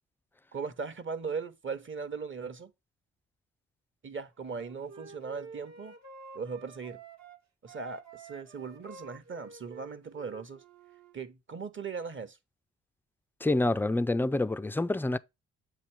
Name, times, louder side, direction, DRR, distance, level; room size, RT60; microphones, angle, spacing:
voice 1, 0.5-2.7 4.0-5.9 6.3-7.0 7.6-10.6 11.1-12.4, right 5 dB, 35° right, 1.0 m, -38 dB
Wind instrument woodwind instrument, 4.5-7.4 7.7-11.2, right 5 dB, 55° right, 1.2 m, -50 dB
voice 2, 13.4-15.2, left 2 dB, 5° left, 0.3 m, -27 dB
7.5 x 2.8 x 4.5 m
hypercardioid pair, 45°, 33 cm